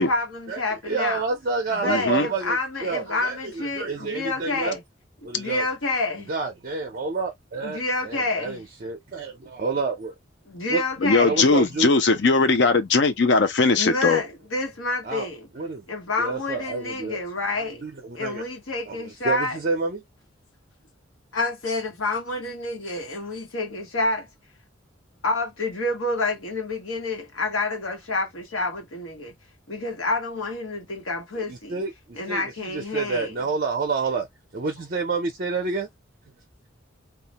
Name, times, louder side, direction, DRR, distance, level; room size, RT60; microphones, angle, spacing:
voice 1, 0.0-1.2 1.8-4.8 5.3-6.3 7.6-8.6 10.5-11.5 13.8-15.5 15.9-17.8 18.2-19.6 21.3-24.3 25.2-29.3 29.7-31.7 32.1-33.3, left 2 dB, 85° left, 1.1 m, -28 dB
voice 2, 0.9-4.8 5.2-5.7 6.3-10.2 10.7-10.8 11.2-11.9 15.0-15.3 15.5-15.8 16.2-17.2 17.5-18.4 18.9-20.0 31.5-34.3 34.5-35.9, right 4 dB, 45° right, 0.5 m, -29 dB
voice 3, 1.8-2.3 11.0-14.2, left 3 dB, 55° left, 0.5 m, -19 dB
2.3 x 2.1 x 2.7 m
head